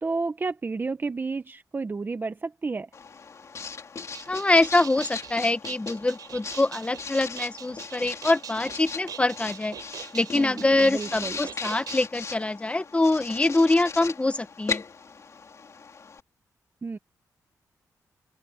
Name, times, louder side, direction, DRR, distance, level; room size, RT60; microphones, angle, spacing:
voice 1, 0.0-2.9 10.3-11.3 16.8-17.0, right 4 dB, 30° right, 1.0 m, -31 dB
Writing, 2.9-16.2, left 5 dB, 50° left, 3.0 m, -38 dB
sound 1, 4.1-12.0, right 8 dB, 80° right, 3.5 m, -42 dB
voice 2, 4.3-9.7 10.1-14.8, left 2 dB, 20° left, 1.0 m, -24 dB
open air
cardioid pair, 95°, 7 cm